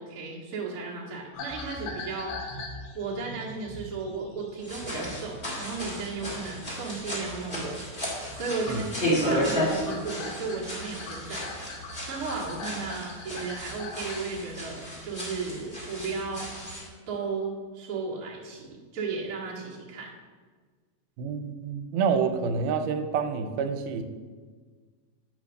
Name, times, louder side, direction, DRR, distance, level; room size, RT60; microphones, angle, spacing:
voice 1, 0.0-2.4 2.9-7.8 8.3-8.9 9.2-11.8 12.1-16.5 17.1-20.1, right 4 dB, 65° right, -5 dB, 0.9 m, -35 dB
sound 1, 1.3-7.8 8.0-14.4, left 3 dB, 70° left, 2.6 m, -42 dB
sound 2, 4.6-16.9, equal, 25° left, 1.4 m, -33 dB
voice 2, 21.2-24.0, right 6 dB, 85° right, 7 dB, 2.5 m, -28 dB
9.0 x 3.5 x 6.3 m, 1.5 s
omnidirectional pair, 4.3 m